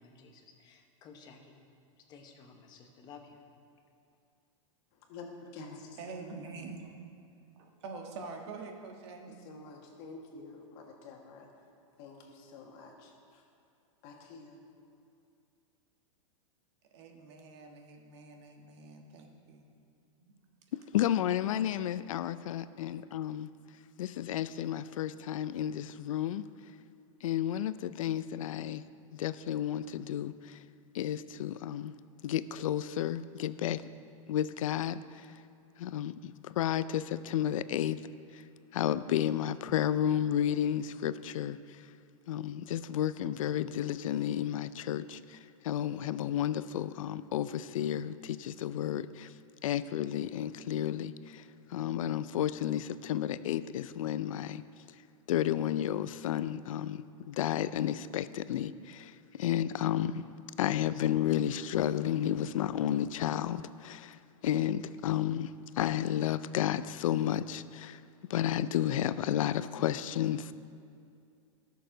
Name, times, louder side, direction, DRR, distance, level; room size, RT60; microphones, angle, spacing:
voice 1, 0.0-1.6 2.0-3.4, left 5 dB, 25° left, 1.0 m, -54 dB
voice 2, 4.9-5.9 9.4-11.6 12.0-13.4 14.0-14.6, left 3 dB, 40° left, 1.6 m, -49 dB
voice 3, 6.0-7.1 7.5-9.4 16.9-19.7 20.2-20.3, right 4 dB, 55° right, 1.5 m, -45 dB
voice 4, 20.9-23.5 24.0-26.5 27.2-28.8 29.1-30.6 30.9-31.9 32.2-33.8 34.3-35.3 35.8-38.0 38.3-38.4 38.7-41.6 42.3-45.4 45.6-49.3 49.6-54.6 55.3-60.3 60.6-64.2 64.4-68.0 68.3-70.5, left 11 dB, 75° left, 0.5 m, -32 dB
17.0 x 6.7 x 3.9 m
supercardioid pair, 155°, 17 cm